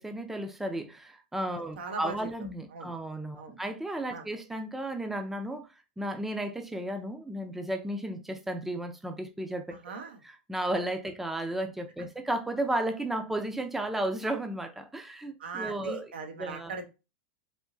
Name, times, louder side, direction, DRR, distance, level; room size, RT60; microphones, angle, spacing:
voice 1, 0.0-5.7 6.0-9.8 10.5-16.1 16.4-16.7, right 1 dB, 5° right, 0.5 m, -33 dB
voice 2, 1.8-2.1 2.7-2.9 3.3-3.6 4.1-4.3 9.8-10.2 15.4-16.8, right 4 dB, 90° right, 0.8 m, -39 dB
3.5 x 2.7 x 2.6 m
hypercardioid pair, 120°, 5 cm